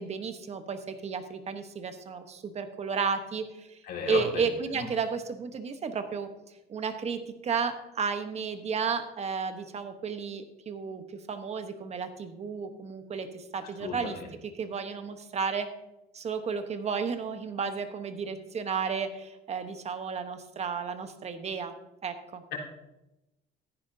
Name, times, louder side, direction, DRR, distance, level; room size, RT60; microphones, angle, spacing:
voice 1, 0.0-3.8 4.0-6.3 6.7-15.7 16.1-21.7 22.0-22.4, right 5 dB, 40° right, 8 dB, 1.1 m, -33 dB
voice 2, 3.9-4.4 4.7-4.8 13.8-14.1 22.5-22.6, left 6 dB, 65° left, -4 dB, 3.8 m, -34 dB
14.0 x 10.0 x 2.8 m, 0.94 s
cardioid pair, 110°, 17 cm